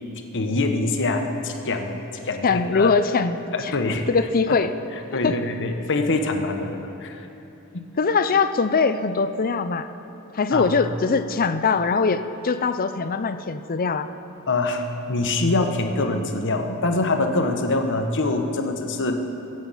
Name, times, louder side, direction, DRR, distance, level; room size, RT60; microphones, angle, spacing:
voice 1, 0.3-2.0 2.2-2.9 3.5-4.1 4.5-4.6 5.1-7.2 10.5-10.8 14.5-19.1, left 2 dB, 55° left, 5 dB, 1.1 m, -24 dB
voice 2, 2.4-3.8 4.1-4.7 5.2-5.4 8.0-9.9 10.3-14.1, left 4 dB, 40° left, 10 dB, 0.5 m, -22 dB
23.0 x 7.9 x 5.6 m, 2.9 s
head